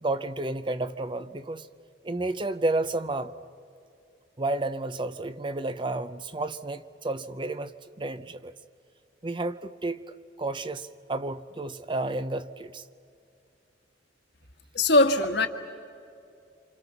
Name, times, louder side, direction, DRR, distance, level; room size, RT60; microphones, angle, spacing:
voice 1, 0.0-1.7 2.0-3.3 4.4-7.7 8.0-8.5 9.2-10.0 10.4-12.8, right 2 dB, 25° right, 12 dB, 0.6 m, -31 dB
voice 2, 14.7-15.5, left 2 dB, 65° left, 5 dB, 1.6 m, -20 dB
28.5 x 27.0 x 5.8 m, 2.5 s
head